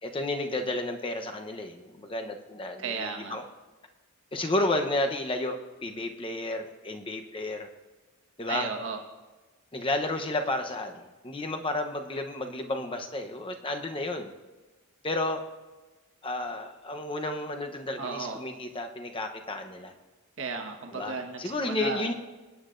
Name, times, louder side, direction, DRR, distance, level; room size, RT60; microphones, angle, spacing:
voice 1, 0.0-3.4 4.3-7.7 8.4-8.7 9.7-14.3 15.0-15.4 16.2-19.9 20.9-22.1, left 2 dB, 25° left, 4 dB, 0.8 m, -32 dB
voice 2, 2.8-3.4 8.5-9.0 18.0-18.4 20.4-22.1, right 4 dB, 60° right, 3 dB, 1.4 m, -34 dB
23.5 x 9.5 x 2.6 m, 1.2 s
head